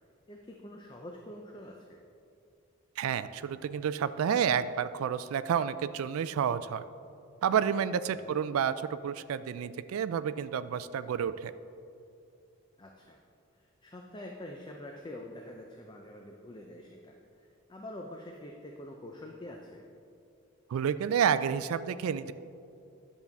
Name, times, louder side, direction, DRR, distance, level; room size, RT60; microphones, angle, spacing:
voice 1, 0.3-2.0 8.1-8.4 12.8-13.2 13.5-19.9, left 1 dB, 20° left, 1 dB, 0.5 m, -46 dB
voice 2, 3.0-6.8 7.4-11.5 20.7-22.3, right 8 dB, 70° right, 14 dB, 0.3 m, -30 dB
10.5 x 7.0 x 3.5 m, 2.5 s
head